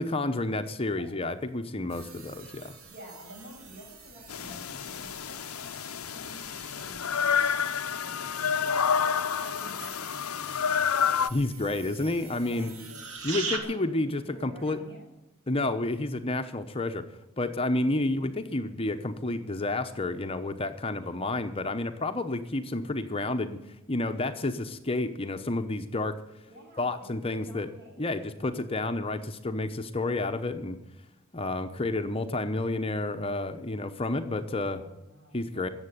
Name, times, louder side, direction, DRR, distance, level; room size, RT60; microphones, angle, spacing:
voice 1, 0.0-2.7 11.3-12.7 13.2-14.8 15.5-17.1 17.4-23.6 23.9-26.2 26.8-27.7 28.0-30.8 31.3-34.8 35.3-35.7, left 2 dB, 25° left, 8 dB, 0.8 m, -30 dB
sound 1, 1.9-13.6, right 5 dB, 80° right, 2.8 m, -43 dB
voice 2, 2.9-5.5 6.1-7.6 8.0-11.0 12.5-15.1 17.7-18.0 26.5-28.7 34.8-35.7, equal, 50° right, -1 dB, 7.3 m, -50 dB
sound 2, 4.3-11.3, left 7 dB, 90° left, 0.6 m, -29 dB
14.5 x 8.1 x 9.8 m, 0.97 s
head